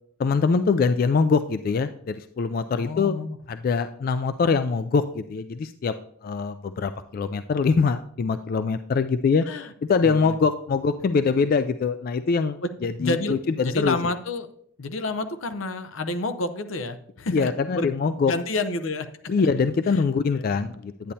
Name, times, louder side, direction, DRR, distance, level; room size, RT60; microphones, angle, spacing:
voice 1, 0.2-3.1 3.5-5.9 6.2-9.4 9.9-14.0 17.3-18.3 19.3-21.1, left 5 dB, 45° left, 10 dB, 0.3 m, -23 dB
voice 2, 2.7-3.4 9.5-9.7 10.0-10.4 12.6-12.7 13.0-13.4 13.6-14.5 14.8-18.0 18.3-19.5 19.9-20.0, left 2 dB, 85° left, 10 dB, 0.7 m, -29 dB
10.0 x 8.7 x 2.7 m, 0.66 s
head